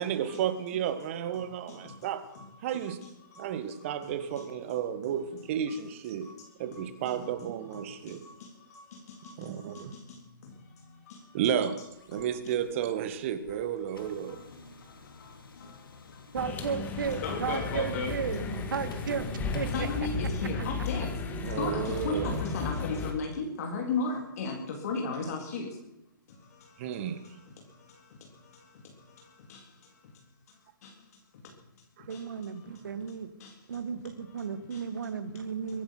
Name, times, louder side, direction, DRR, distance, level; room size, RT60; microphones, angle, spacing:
voice 1, 0.0-2.3 2.6-3.0 3.4-6.3 6.6-8.2 9.4-10.0 11.3-11.8 12.1-14.4 21.4-22.4 26.8-27.2 32.0-32.1, right 9 dB, 35° right, 1.7 m, -32 dB
voice 2, 1.3-4.8 5.0-5.2 5.7-5.8 6.2-6.9 7.1-11.7 12.1-12.5 13.5-18.2 18.4-18.8 19.7-25.8 26.3-31.5 32.0-35.3, left 4 dB, 45° left, 3.7 m, -39 dB
sound 1, 11.9-20.0, left 4 dB, 80° left, 3.1 m, -51 dB
voice 3, 16.3-18.4 18.7-19.2 19.5-19.9 32.1-33.3 33.7-35.8, right 6 dB, 65° right, 2.1 m, -34 dB
sound 2, 16.4-23.1, left 4 dB, 15° left, 1.8 m, -34 dB
23.0 x 10.5 x 6.0 m
hypercardioid pair, 145°, 12 cm